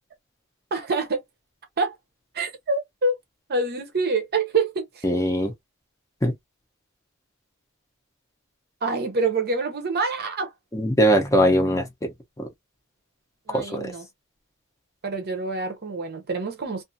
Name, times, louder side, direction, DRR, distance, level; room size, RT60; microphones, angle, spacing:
voice 1, 0.7-1.2 1.8-2.0 2.3-3.2 3.5-5.1 8.8-10.5 13.5-14.0 15.0-16.8, right 3 dB, 45° right, 0.7 m, -26 dB
voice 2, 5.0-5.5 6.2-6.3 10.7-12.5 13.5-13.9, equal, 15° left, 0.7 m, -21 dB
2.5 x 2.4 x 2.5 m
head